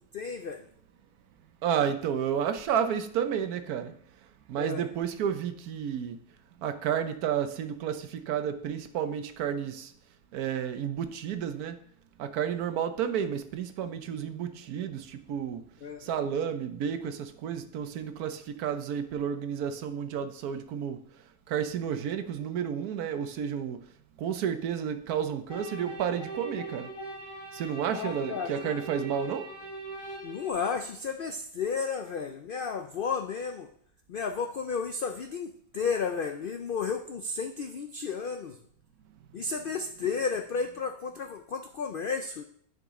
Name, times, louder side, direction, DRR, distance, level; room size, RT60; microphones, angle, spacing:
voice 1, 0.1-0.7 4.6-4.9 15.8-16.0 27.9-28.8 30.2-33.7 34.1-38.6 39.3-42.4, left 5 dB, 80° left, 0.4 m, -33 dB
voice 2, 1.6-3.9 4.5-6.2 6.6-9.9 10.3-11.8 12.2-15.7 16.0-21.0 21.5-23.8 24.2-26.9 27.5-29.5, right 8 dB, 90° right, 1.2 m, -31 dB
sound 1, 25.5-30.5, right 2 dB, 65° left, 2.6 m, -41 dB
9.8 x 5.3 x 3.6 m
omnidirectional pair, 1.6 m